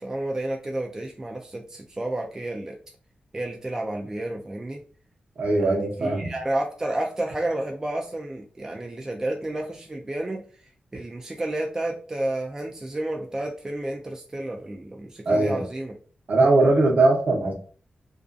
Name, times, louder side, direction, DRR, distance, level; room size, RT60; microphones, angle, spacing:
voice 1, 0.0-2.8 3.3-4.8 5.6-10.4 10.9-15.9, right 1 dB, 20° right, 0 dB, 0.3 m, -31 dB
voice 2, 5.4-6.3 15.3-15.6 16.3-17.5, right 2 dB, 60° right, 0 dB, 0.8 m, -20 dB
2.3 x 2.3 x 2.5 m, 0.42 s
wide cardioid pair, 125°, 3 cm